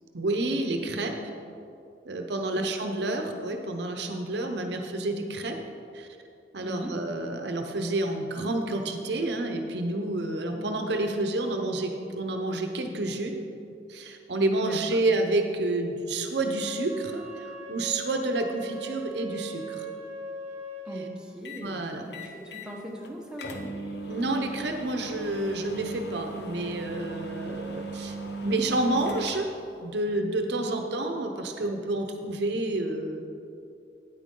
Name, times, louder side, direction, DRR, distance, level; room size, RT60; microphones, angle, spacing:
voice 1, 0.1-1.1 2.1-5.6 5.9-6.1 6.5-13.4 13.9-19.9 21.6-22.1 24.1-28.1 28.4-29.5 29.8-33.2, right 2 dB, 70° right, 4 dB, 0.8 m, -29 dB
voice 2, 6.6-7.0 14.6-15.0 20.8-23.8, equal, 5° right, -2 dB, 1.1 m, -40 dB
Wind instrument woodwind instrument, 16.5-21.0, right 3 dB, 35° right, 1.1 m, -39 dB
sound 1, 21.5-21.7 22.1-22.7 23.0-23.1 23.4-29.7, right 2 dB, 65° left, 0.8 m, -38 dB
9.1 x 9.1 x 3.7 m, 2.6 s
head